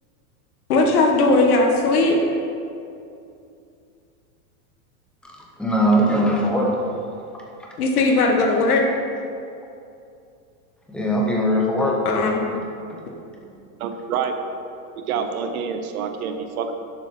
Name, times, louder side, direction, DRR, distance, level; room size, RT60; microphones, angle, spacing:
voice 1, 0.7-2.2 7.8-8.8 12.0-12.4, left 3 dB, 90° left, 1 dB, 1.7 m, -18 dB
voice 2, 5.2-6.7 7.3-7.7 10.9-12.0, equal, ahead, -2 dB, 0.7 m, -21 dB
voice 3, 13.8-14.3 15.1-16.7, right 6 dB, 75° right, 6 dB, 1.0 m, -27 dB
11.5 x 7.4 x 4.4 m, 2.5 s
supercardioid pair, 170°, 44 cm